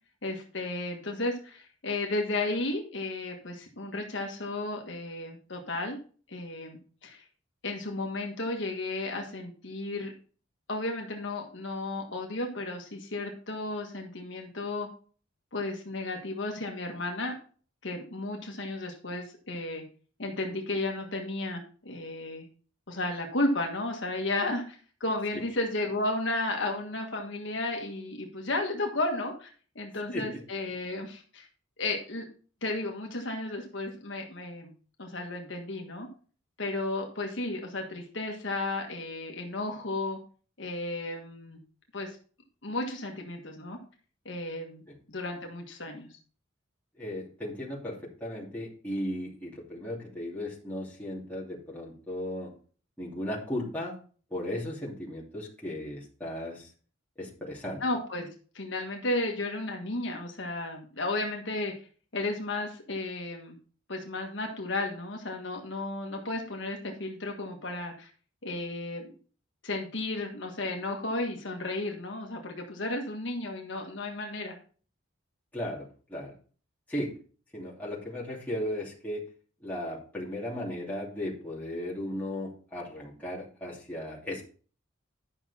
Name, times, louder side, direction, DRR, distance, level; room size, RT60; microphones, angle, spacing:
voice 1, 0.2-6.0 6.3-7.2 7.6-10.1 10.7-14.9 15.5-17.3 17.8-19.8 20.2-22.5 22.9-29.5 29.7-31.5 31.8-32.2 32.6-34.7 35.0-36.1 36.6-40.2 40.6-41.6 41.9-42.2 42.6-43.8 44.2-44.8 45.1-46.1 57.8-58.3 58.5-61.7 62.1-63.6 63.9-68.1 68.4-69.1 69.6-74.6, left 2 dB, 60° left, 2 dB, 1.5 m, -33 dB
voice 2, 47.0-52.5 53.0-54.0 54.3-56.7 57.2-57.8 75.5-76.4 76.9-77.1 77.5-79.3 79.6-84.4, left 1 dB, 10° left, -6 dB, 2.7 m, -36 dB
10.5 x 6.1 x 4.2 m, 0.41 s
head